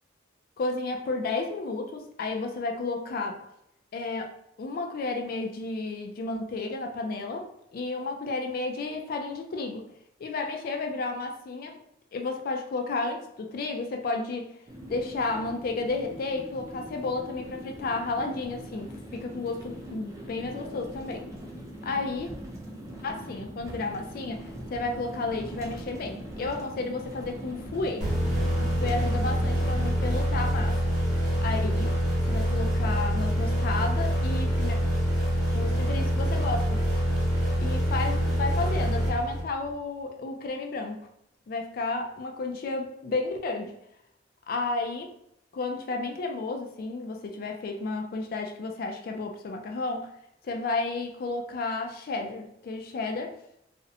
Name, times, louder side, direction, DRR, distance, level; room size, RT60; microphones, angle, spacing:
voice 1, 0.6-3.5 3.9-9.9 10.2-11.8 12.1-14.5 14.9-21.3 21.8-22.3 23.0-28.1 28.6-30.9 31.4-32.0 32.2-34.8 35.5-36.8 37.6-41.1 41.5-43.7 44.5-45.1 45.5-50.1 50.4-53.4, left 3 dB, 50° left, 0.3 m, -32 dB
sound 1, 14.7-30.2, equal, 15° right, 0.4 m, -41 dB
sound 2, 28.0-39.7, equal, 40° right, 0.9 m, -26 dB
2.5 x 2.0 x 2.7 m
head